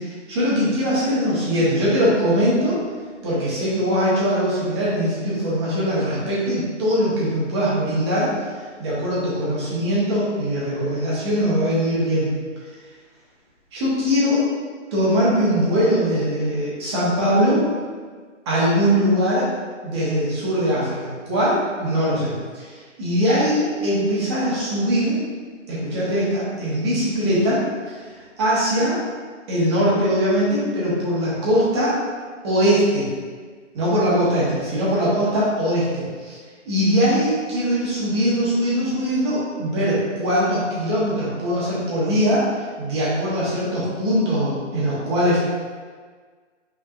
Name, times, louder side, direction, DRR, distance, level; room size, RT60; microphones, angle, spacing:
voice 1, 0.3-2.8 3.2-8.3 8.8-12.3 13.7-14.5 14.9-17.7 18.4-19.5 19.8-25.2 25.7-27.6 28.4-29.0 29.5-32.0 32.4-33.1 33.7-36.4 36.6-42.5 42.8-45.4, equal, 20° right, -7 dB, 1.1 m, -21 dB
5.4 x 3.5 x 2.5 m, 1.5 s
hypercardioid pair, 155°, 37 cm